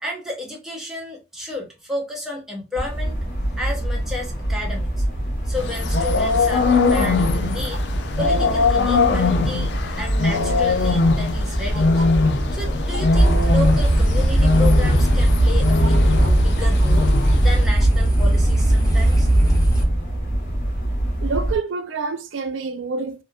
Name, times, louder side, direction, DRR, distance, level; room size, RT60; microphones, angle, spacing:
voice 1, 0.0-3.2 3.6-5.1 5.4-7.9 8.2-12.0 12.5-17.1 17.4-19.3, left 2 dB, ahead, 0.7 m, -32 dB
sound 1, 2.7-21.6, right 1 dB, 45° left, 1.0 m, -25 dB
sound 2, 5.6-17.6, left 3 dB, 60° left, 0.4 m, -21 dB
sound 3, 13.2-19.8, right 1 dB, 20° left, 1.1 m, -18 dB
voice 2, 21.2-23.2, right 4 dB, 85° right, 0.4 m, -27 dB
2.8 x 2.0 x 2.3 m
head